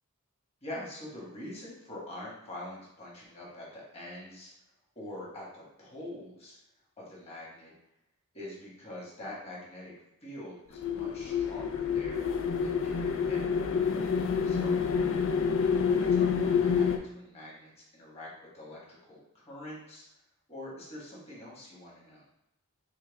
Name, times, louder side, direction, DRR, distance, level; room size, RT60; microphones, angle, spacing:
voice 1, 0.6-4.5 4.9-6.6 7.0-7.7 8.3-9.9 10.2-12.3 12.6-13.5 14.4-14.8 15.7-18.3 18.5-20.1 20.5-22.2, left 1 dB, 30° left, -5 dB, 1.4 m, -44 dB
sound 1, 10.8-17.0, left 6 dB, 65° left, 0.4 m, -28 dB
5.8 x 2.2 x 3.4 m, 0.87 s
head